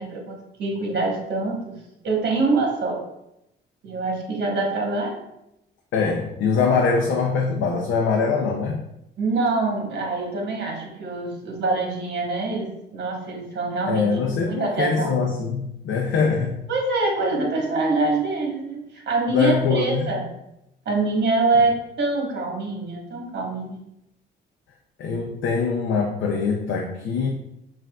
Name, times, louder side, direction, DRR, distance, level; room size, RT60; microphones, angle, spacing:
voice 1, 0.0-1.8 2.0-3.0 3.8-5.2 9.2-14.1 14.4-15.1 16.7-20.3 20.8-23.8, right 3 dB, 60° right, 0 dB, 1.2 m, -25 dB
voice 2, 5.9-8.8 13.8-16.6 19.3-20.1 25.0-27.3, left 4 dB, 80° left, 0 dB, 0.6 m, -23 dB
5.7 x 2.5 x 2.3 m, 0.84 s
cardioid pair, 90°, 20 cm